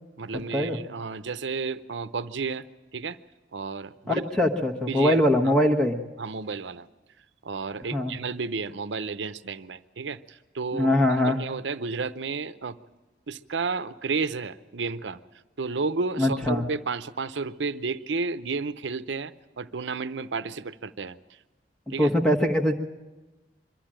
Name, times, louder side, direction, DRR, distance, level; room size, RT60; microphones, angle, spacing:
voice 1, 0.2-2.6 2.9-3.2 3.5-4.4 4.9-5.5 6.2-6.9 7.4-10.9 11.2-12.8 13.3-15.2 15.6-21.2 21.9-22.1, right 4 dB, 85° right, 14 dB, 0.7 m, -32 dB
voice 2, 4.1-6.0 7.9-8.1 10.7-11.4 16.2-16.6 22.0-22.7, left 1 dB, 5° left, 1 dB, 1.2 m, -22 dB
23.5 x 13.5 x 8.8 m, 1.2 s
head